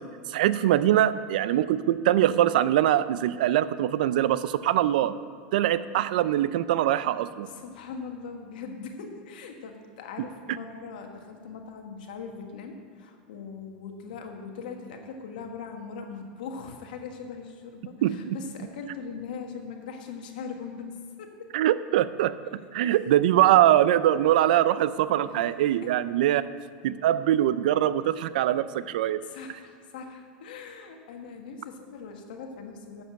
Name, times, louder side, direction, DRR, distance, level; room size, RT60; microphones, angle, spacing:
voice 1, 0.3-5.1 5.5-7.5 18.0-18.4 21.5-22.4 22.7-26.4 26.8-29.2, right 12 dB, 80° right, 15 dB, 0.4 m, -23 dB
voice 2, 7.5-20.9 21.2-21.5 22.8-23.0 25.2-25.5 25.8-25.9 29.2-33.0, left 5 dB, 85° left, 4 dB, 1.4 m, -40 dB
7.6 x 7.2 x 7.8 m, 2.2 s
supercardioid pair, 125°, 5 cm